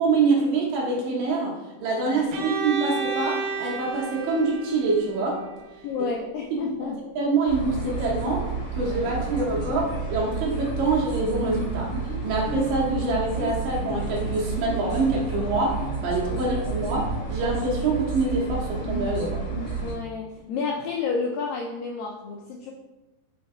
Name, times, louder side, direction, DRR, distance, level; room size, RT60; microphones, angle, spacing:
voice 1, 0.0-5.4 6.6-6.9 7.2-11.9 12.2-19.4, right 3 dB, 70° right, -3 dB, 2.3 m, -25 dB
voice 2, 2.1-2.5 5.8-7.0 16.3-16.5 19.8-22.7, left 5 dB, 85° left, 1 dB, 2.0 m, -31 dB
Bowed string instrument, 2.3-6.1, right 5 dB, 90° right, 2.8 m, -32 dB
sound 1, 7.5-19.9, right 4 dB, 35° left, 1.2 m, -30 dB
5.6 x 5.2 x 3.6 m, 1.1 s
omnidirectional pair, 4.5 m